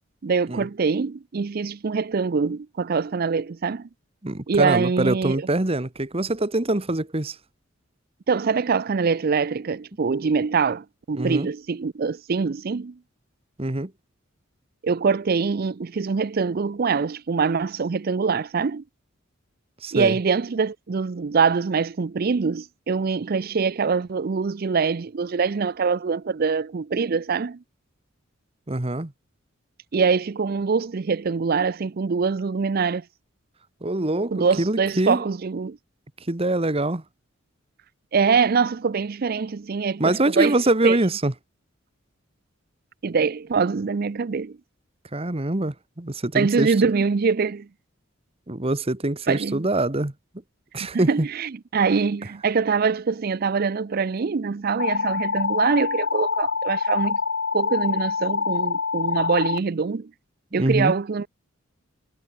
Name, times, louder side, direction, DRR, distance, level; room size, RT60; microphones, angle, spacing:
voice 1, 0.2-3.9 4.5-5.5 8.3-13.0 14.8-18.8 19.9-27.6 29.9-33.0 34.3-35.8 38.1-41.0 43.0-44.6 46.3-47.7 49.3-49.7 50.9-57.2 57.5-60.1 60.5-61.3, right 5 dB, 45° right, 0.5 m, -24 dB
voice 2, 4.2-7.4 11.1-11.5 13.6-13.9 19.8-20.2 28.7-29.1 33.8-35.2 36.3-37.0 40.0-41.3 45.1-46.7 48.5-50.1 50.7-51.3 60.5-60.9, right 2 dB, 30° right, 1.3 m, -24 dB
sound 1, 54.8-59.6, left 5 dB, 60° left, 1.1 m, -25 dB
head